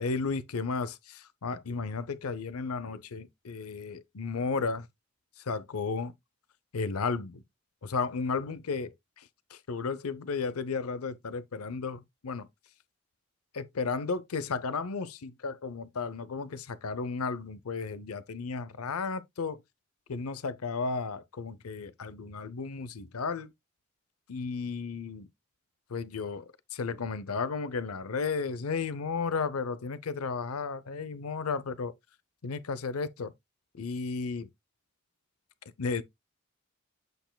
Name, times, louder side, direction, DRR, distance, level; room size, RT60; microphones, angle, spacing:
voice 1, 0.0-4.9 5.5-6.1 6.7-7.4 7.8-9.2 9.5-12.5 13.5-19.6 20.1-23.5 24.3-25.3 25.9-31.9 32.4-33.3 33.8-34.5 35.8-36.0, left 4 dB, 85° left, 0.6 m, -34 dB
8.0 x 6.7 x 2.2 m
head